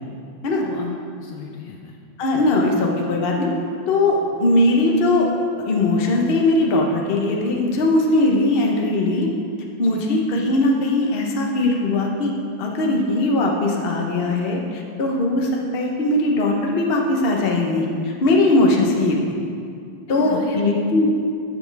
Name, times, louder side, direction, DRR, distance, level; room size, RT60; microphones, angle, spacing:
voice 1, 0.6-2.0 2.3-2.5 9.8-10.1 20.1-20.6, left 5 dB, 70° left, 1 dB, 1.2 m, -35 dB
voice 2, 2.2-3.5 3.9-5.3 5.6-9.3 9.8-12.3 12.6-19.2 20.1-21.1, left 2 dB, 40° left, 0 dB, 0.9 m, -20 dB
14.0 x 7.0 x 3.4 m, 2.4 s
omnidirectional pair, 2.3 m